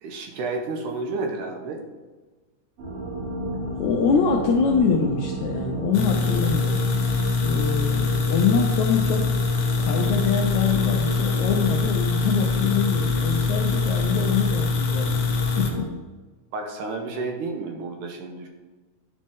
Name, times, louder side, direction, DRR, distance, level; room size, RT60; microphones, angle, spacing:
voice 1, 0.0-1.8 16.5-18.5, right 3 dB, 75° right, 3 dB, 2.1 m, -31 dB
sound 1, 2.8-15.9, right 1 dB, 45° right, 3.3 m, -33 dB
voice 2, 3.8-6.9 7.4-9.2 9.8-15.9, left 6 dB, 85° left, 1 dB, 1.7 m, -24 dB
sound 2, 5.9-15.7, left 4 dB, 65° left, 1.9 m, -24 dB
10.0 x 4.2 x 3.6 m, 1.3 s
omnidirectional pair, 3.9 m